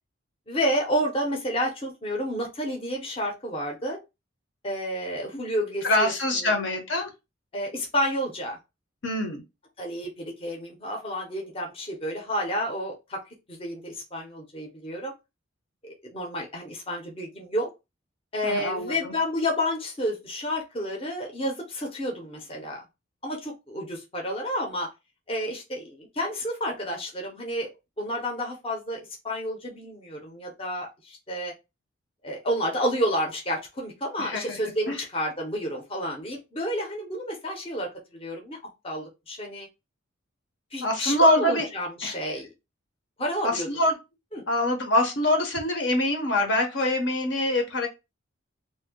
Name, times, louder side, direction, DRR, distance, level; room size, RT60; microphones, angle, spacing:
voice 1, 0.5-4.0 4.6-6.5 7.5-8.6 9.8-13.2 13.5-15.1 15.8-17.7 18.3-22.8 23.2-24.9 25.3-27.7 28.0-29.0 29.2-31.5 32.2-38.6 38.8-39.7 40.7-42.5 43.2-43.7 44.3-44.4, equal, 25° left, 0 dB, 0.6 m, -30 dB
voice 2, 5.8-7.1 9.0-9.4 18.4-19.1 34.2-34.6 34.9-35.0 40.8-41.7 42.0-42.2 43.4-43.9 44.5-47.9, left 1 dB, 60° left, 3 dB, 0.7 m, -24 dB
2.6 x 2.2 x 3.5 m, 0.25 s
head